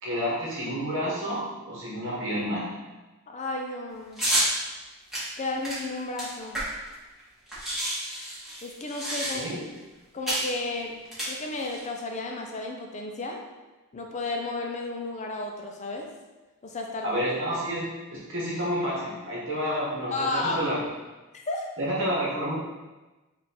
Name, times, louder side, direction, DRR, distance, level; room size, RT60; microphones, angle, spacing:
voice 1, 0.0-2.7 9.3-9.6 17.0-20.8 21.8-22.6, equal, 60° right, -6 dB, 1.0 m, -29 dB
voice 2, 3.3-4.2 5.4-6.6 8.6-9.5 10.1-11.0 11.3-13.4 13.9-16.1 16.6-17.1 20.1-20.6 21.5-21.6, left 2 dB, 30° left, 1 dB, 0.5 m, -32 dB
sound 1, 4.2-4.5 5.1-6.9 7.2-7.3 7.5-9.6 10.3-10.5 11.1-11.8, right 1 dB, ahead, 1.0 m, -29 dB
3.6 x 2.4 x 4.2 m, 1.1 s
head